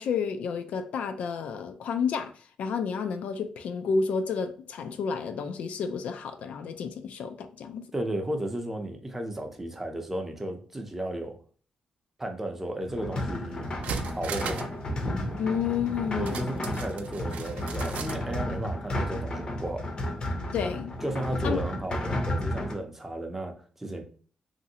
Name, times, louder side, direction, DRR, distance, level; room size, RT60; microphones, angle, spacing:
voice 1, 0.0-2.3 2.6-7.9 15.4-16.4 20.5-20.9 21.4-21.6, left 6 dB, 75° left, 0.3 m, -30 dB
voice 2, 7.9-11.4 12.2-13.7 14.2-14.7 16.2-19.9 21.0-24.0, right 1 dB, 15° right, 0.5 m, -34 dB
sound 1, 12.9-22.7, left 1 dB, 40° left, 0.6 m, -32 dB
sound 2, 13.6-14.8 15.1-15.2 16.3-18.2 18.6-18.7, right 6 dB, 80° right, 0.3 m, -37 dB
3.0 x 2.6 x 2.7 m
cardioid pair, 135°, 2 cm